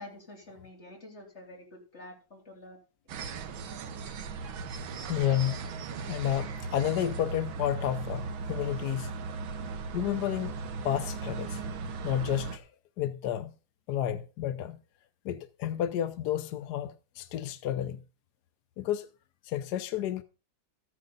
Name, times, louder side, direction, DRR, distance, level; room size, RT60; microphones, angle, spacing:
voice 1, 0.0-2.8, left 1 dB, 35° left, 3.9 m, -48 dB
sound 1, 3.1-12.6, right 4 dB, 85° right, 1.8 m, -37 dB
voice 2, 5.1-5.6 6.1-9.1 9.9-10.6 10.8-11.6 12.0-12.7 13.0-13.5 13.9-14.8 15.2-18.0 18.8-19.1 19.4-20.2, left 11 dB, 65° left, 1.1 m, -31 dB
14.0 x 9.6 x 3.9 m
omnidirectional pair, 2.1 m